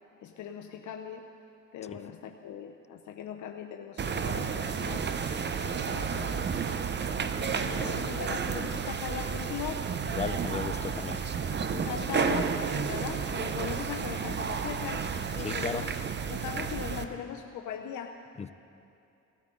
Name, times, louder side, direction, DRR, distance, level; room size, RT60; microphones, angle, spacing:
voice 1, 0.2-1.3 1.7-5.1 5.6-6.4 7.2-9.9 11.7-15.9 16.3-18.2, left 8 dB, 75° left, 3 dB, 0.7 m, -39 dB
sound 1, 4.0-17.0, right 6 dB, 35° right, 0.7 m, -31 dB
voice 2, 10.0-11.2 15.4-15.8 18.4-18.5, left 6 dB, 25° left, 13 dB, 0.4 m, -35 dB
18.0 x 13.0 x 3.8 m, 2.7 s
cardioid pair, 90°, 30 cm